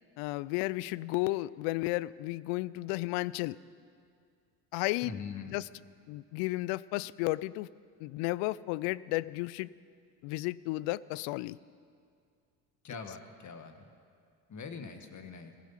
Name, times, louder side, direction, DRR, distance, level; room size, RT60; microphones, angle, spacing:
voice 1, 0.2-3.6 4.7-5.2 5.5-5.7 6.1-7.7 8.0-9.7 10.2-11.6, left 20 dB, 70° left, 20 dB, 0.5 m, -33 dB
voice 2, 5.0-5.6 12.8-13.7 14.5-15.5, left 5 dB, 40° left, 7 dB, 1.7 m, -42 dB
16.0 x 15.5 x 5.7 m, 2.2 s
hypercardioid pair, 70°, 44 cm